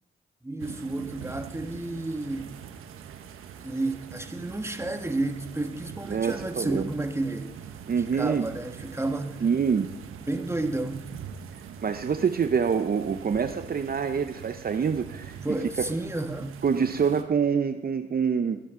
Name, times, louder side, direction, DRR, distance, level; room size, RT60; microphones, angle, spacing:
voice 1, 0.4-2.6 3.6-7.5 8.0-9.4 10.1-11.1 15.4-16.6, right 2 dB, 10° right, 1.5 m, -31 dB
sound 1, 0.6-17.2, right 8 dB, 80° right, 0.9 m, -43 dB
voice 2, 6.1-6.9 7.9-8.5 9.4-9.9 11.8-15.4 16.6-18.6, right 6 dB, 45° right, 0.7 m, -26 dB
21.0 x 10.0 x 3.8 m
supercardioid pair, 45°, 21 cm